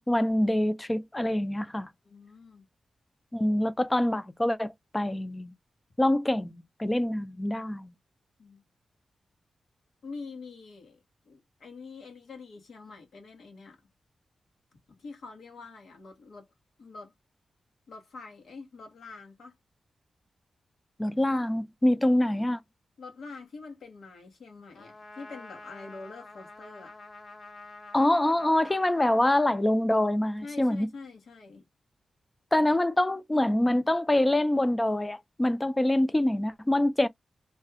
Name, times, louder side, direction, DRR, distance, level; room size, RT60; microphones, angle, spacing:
voice 1, 0.1-1.9 3.3-5.5 6.0-7.9 21.0-22.6 27.9-30.9 32.5-37.1, left 1 dB, 15° left, 0.4 m, -25 dB
voice 2, 2.0-2.7 8.4-8.6 10.0-13.8 14.9-16.5 16.8-17.1 17.9-19.6 23.0-26.9 30.4-31.6, left 4 dB, 85° left, 1.2 m, -45 dB
Trumpet, 24.7-30.0, left 2 dB, 55° left, 1.1 m, -48 dB
2.7 x 2.2 x 3.3 m
cardioid pair, 75°, 0 cm